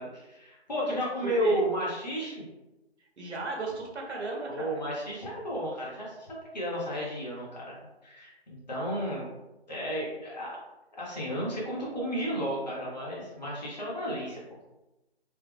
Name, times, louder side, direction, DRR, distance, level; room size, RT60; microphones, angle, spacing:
voice 1, 0.0-2.5 4.5-9.3 9.7-10.6 11.0-14.4, equal, 40° left, -6 dB, 1.2 m, -33 dB
voice 2, 1.2-1.6 3.2-4.8, right 2 dB, 85° right, -1 dB, 1.1 m, -35 dB
3.3 x 2.0 x 3.5 m, 1.0 s
hypercardioid pair, 180°, 33 cm